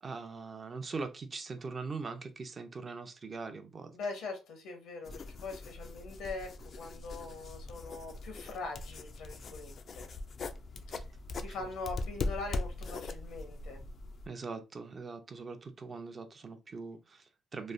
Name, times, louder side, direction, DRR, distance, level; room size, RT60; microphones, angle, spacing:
voice 1, 0.0-3.9 10.9-11.0 11.5-11.7 14.3-17.7, right 4 dB, 40° right, 0.5 m, -42 dB
voice 2, 3.9-10.1 11.3-13.8, left 3 dB, 85° left, 0.9 m, -42 dB
sound 1, 5.0-14.3, left 3 dB, 50° left, 0.3 m, -41 dB
3.1 x 2.0 x 2.5 m
cardioid pair, 90°, 0 cm